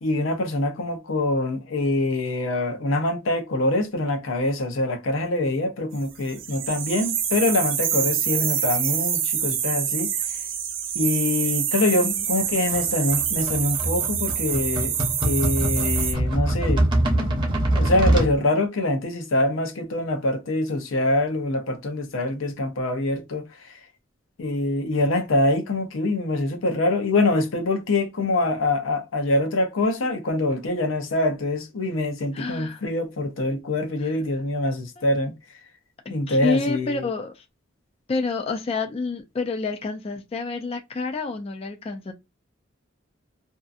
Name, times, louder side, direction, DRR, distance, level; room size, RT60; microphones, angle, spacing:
voice 1, 0.0-10.1 10.9-14.9 15.2-23.7 24.4-35.3 36.1-37.0, left 2 dB, 85° left, 0.6 m, -24 dB
sound 1, 6.3-16.1, right 9 dB, 75° right, 0.6 m, -26 dB
sound 2, 12.7-18.3, right 1 dB, 25° right, 0.7 m, -24 dB
voice 2, 32.3-32.8 34.0-34.2 35.0-35.1 36.3-37.4 38.1-42.1, left 3 dB, 30° left, 0.3 m, -28 dB
2.6 x 2.5 x 2.3 m
head